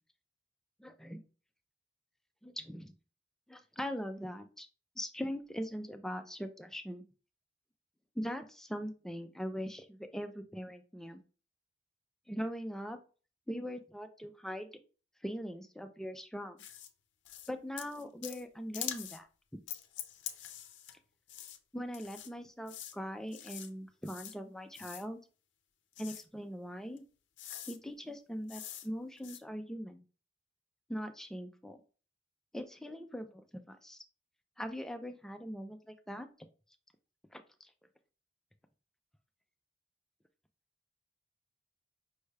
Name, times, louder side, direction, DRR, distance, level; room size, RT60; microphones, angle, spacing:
voice 1, 0.8-1.2 2.4-2.9 3.5-4.7 5.0-7.0 8.2-11.2 12.3-13.0 13.5-14.7 15.2-16.6 17.5-19.3 19.5-19.6 21.7-25.2 26.0-27.0 27.7-30.0 30.9-31.8 32.5-34.0 34.6-36.5 37.3-37.7, equal, 5° left, 6 dB, 0.4 m, -41 dB
sound 1, 16.6-16.9 17.3-17.5 17.8-18.4 18.7-19.2 19.7-21.0 21.3-21.6 21.9-22.3 22.7-23.0 23.3-23.7 24.0-24.4 24.7-25.1 25.9-26.2 27.0-27.1 27.4-27.8 28.5-28.9 29.2-29.4, left 11 dB, 75° left, 0.5 m, -44 dB
5.4 x 2.4 x 3.2 m, 0.36 s
head